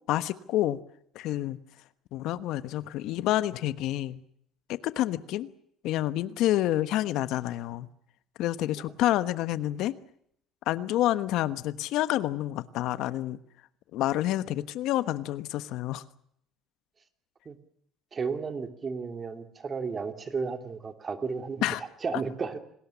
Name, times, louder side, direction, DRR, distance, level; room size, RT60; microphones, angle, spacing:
voice 1, 0.1-0.8 1.1-1.6 2.1-4.2 4.7-5.5 5.8-7.9 8.4-9.9 10.7-13.4 13.9-16.0 21.6-21.8, left 14 dB, 70° left, 14 dB, 1.2 m, -28 dB
voice 2, 18.1-22.6, right 5 dB, 30° right, 8 dB, 2.7 m, -33 dB
27.5 x 19.5 x 7.1 m, 0.70 s
cardioid pair, 135°, 0 cm